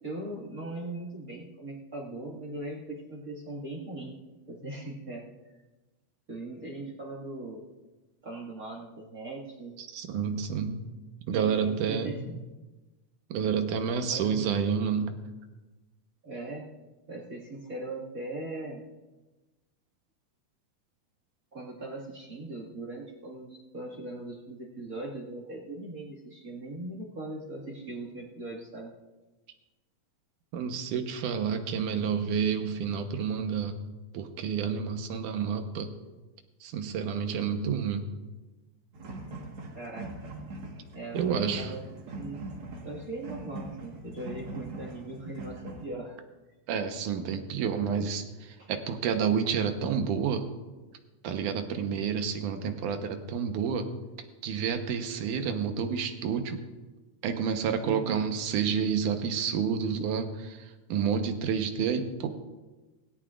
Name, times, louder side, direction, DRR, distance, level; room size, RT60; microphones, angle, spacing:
voice 1, 0.0-4.1 4.5-5.3 5.5-5.6 6.3-7.6 8.2-9.8 11.3-12.5 14.1-14.5 16.2-16.7 17.1-18.8 21.5-28.9 39.7-40.3 40.9-41.8 42.2-42.5 42.8-46.2 48.6-48.7 57.8-58.2, right 2 dB, 30° right, -1 dB, 2.0 m, -40 dB
voice 2, 9.8-10.8 11.3-12.3 13.3-15.2 30.5-33.7 34.1-35.9 36.6-38.1 41.1-41.7 46.7-50.5 51.2-53.9 54.4-56.6 57.2-62.3, right 7 dB, 85° right, 6 dB, 2.5 m, -29 dB
sound 1, 38.9-45.9, right 2 dB, 50° right, 2.1 m, -41 dB
17.5 x 17.0 x 2.5 m, 1.2 s
omnidirectional pair, 3.5 m